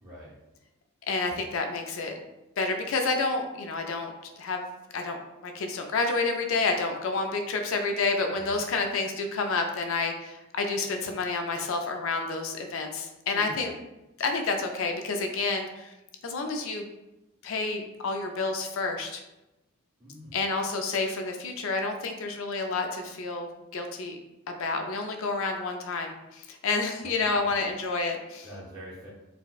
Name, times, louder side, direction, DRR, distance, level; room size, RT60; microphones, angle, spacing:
voice 1, 0.0-0.3 8.3-8.7 13.3-13.8 20.0-20.5 27.0-27.5 28.4-29.1, equal, 20° right, -9 dB, 0.6 m, -45 dB
voice 2, 1.1-2.1 2.6-4.1 4.4-4.6 4.9-5.2 5.4-13.7 14.2-15.9 16.2-16.8 17.4-19.2 20.3-24.2 24.6-28.5, left 3 dB, 60° left, 4 dB, 0.4 m, -29 dB
4.0 x 2.1 x 2.3 m, 0.95 s
head